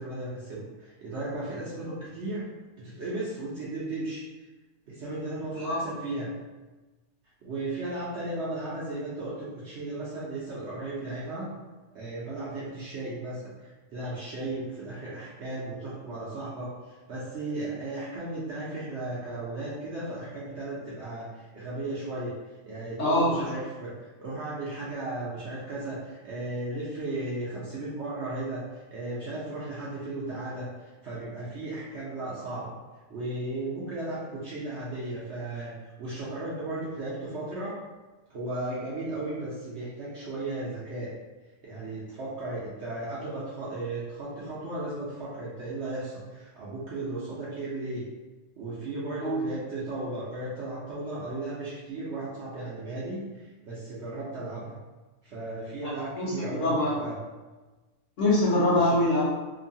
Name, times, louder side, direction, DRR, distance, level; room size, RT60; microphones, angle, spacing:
voice 1, 0.0-2.5 2.8-4.2 4.9-6.3 7.4-11.5 11.9-22.3 22.6-32.8 33.1-37.8 38.3-41.1 41.6-48.0 48.5-54.7 55.2-57.2 58.7-59.0, right 2 dB, 60° right, -7 dB, 0.7 m, -35 dB
voice 2, 23.0-23.3 49.2-49.4 55.9-57.0 58.2-59.3, left 1 dB, 55° left, -8 dB, 1.2 m, -24 dB
3.0 x 2.2 x 2.6 m, 1.2 s
omnidirectional pair, 1.6 m